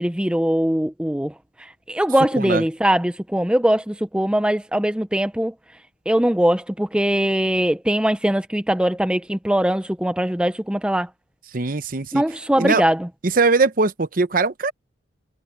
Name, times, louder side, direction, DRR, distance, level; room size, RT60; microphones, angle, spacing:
voice 1, 0.0-1.3 1.9-5.5 6.1-11.1 12.1-13.1, right 1 dB, 5° right, 0.5 m, -21 dB
voice 2, 11.5-12.2 12.6-12.8 13.3-14.7, right 3 dB, 45° right, 0.8 m, -20 dB
head